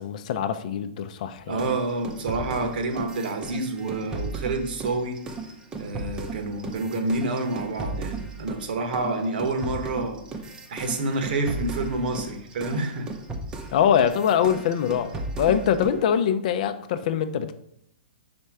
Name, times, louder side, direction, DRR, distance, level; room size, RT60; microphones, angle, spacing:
voice 1, 0.0-1.6 13.7-15.1 15.4-17.5, left 8 dB, 45° left, 10 dB, 0.5 m, -23 dB
voice 2, 1.5-5.2 5.8-10.3 10.7-13.1, right 2 dB, 65° right, 6 dB, 1.2 m, -28 dB
sound 1, 1.6-8.7 8.9-16.0, right 3 dB, 15° right, 0.6 m, -36 dB
5.4 x 4.4 x 4.7 m, 0.72 s
hypercardioid pair, 155°, 5 cm